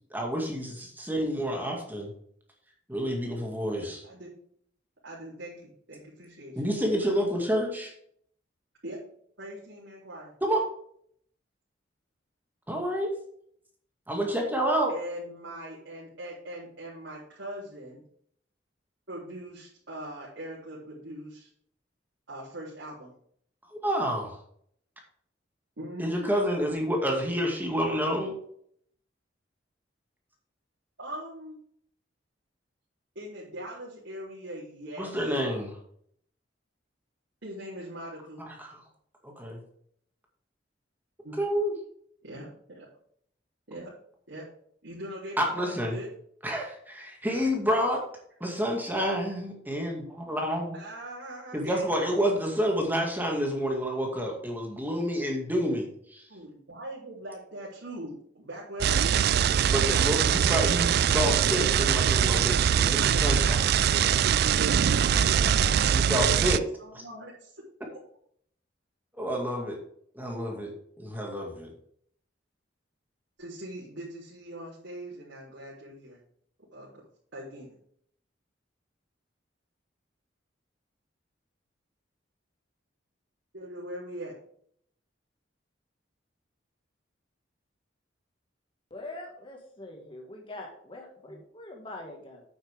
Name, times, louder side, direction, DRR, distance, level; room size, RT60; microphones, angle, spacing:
voice 1, 0.1-2.1 2.9-4.0 6.6-7.9 10.4-10.6 12.7-13.1 14.1-14.9 23.8-24.4 26.0-28.3 35.0-35.8 38.4-38.7 39.2-39.6 41.4-41.7 45.4-46.0 46.4-48.0 48.4-50.8 51.5-56.2 59.7-63.8 65.9-66.6 66.9-67.0 69.2-69.8 70.1-70.7 71.0-71.7, equal, 10° right, 0 dB, 2.1 m, -29 dB
voice 2, 4.0-4.4 5.0-6.6 8.8-9.0 9.4-10.3 14.9-18.0 19.1-21.5 22.3-23.1 25.8-26.3 31.0-31.6 33.2-35.2 37.4-38.4 41.2-41.3 42.2-42.5 42.7-42.9 43.7-43.9 44.3-44.4 44.8-46.1 50.7-52.0 56.3-59.3 64.8-67.6 73.4-76.2 76.7-76.9 77.3-77.7 83.5-84.3, right 1 dB, 85° right, -7 dB, 3.7 m, -41 dB
sound 1, 58.8-66.6, right 8 dB, 60° right, 0.3 m, -23 dB
voice 3, 88.9-92.4, left 2 dB, 30° left, 1 dB, 1.9 m, -43 dB
9.0 x 8.7 x 3.6 m, 0.64 s
head